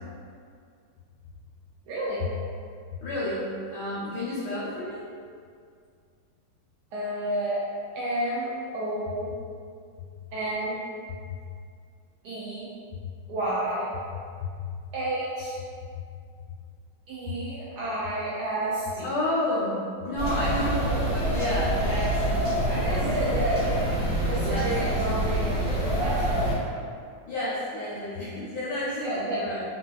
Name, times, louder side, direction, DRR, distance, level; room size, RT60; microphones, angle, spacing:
voice 1, 1.9-2.3 6.9-7.6 7.9-9.3 10.3-10.8 12.2-12.7 13.3-13.9 14.9-15.6 17.1-19.1 22.8-23.8 24.2-26.5 29.0-29.4, right 1 dB, 80° right, -7 dB, 0.9 m, -30 dB
voice 2, 3.0-5.1 14.4-14.6 19.0-23.8 24.4-25.2 27.3-29.6, left 1 dB, 75° left, -10 dB, 1.3 m, -31 dB
sound 1, 20.2-26.5, right 1 dB, 25° left, 0.9 m, -26 dB
3.4 x 2.6 x 2.3 m, 2.2 s
omnidirectional pair, 2.3 m